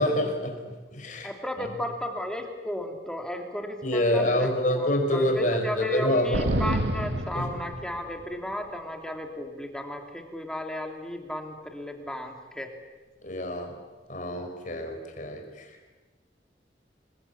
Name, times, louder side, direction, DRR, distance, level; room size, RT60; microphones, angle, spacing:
voice 1, 0.0-1.3 3.8-6.6 7.3-7.5 13.2-13.8 14.1-15.9, left 1 dB, 45° left, 4 dB, 5.1 m, -27 dB
voice 2, 1.2-12.7, left 1 dB, 5° left, 3 dB, 2.7 m, -34 dB
sound 1, 6.3-8.3, right 1 dB, 90° right, 2.0 m, -28 dB
27.5 x 21.0 x 8.4 m, 1.3 s
head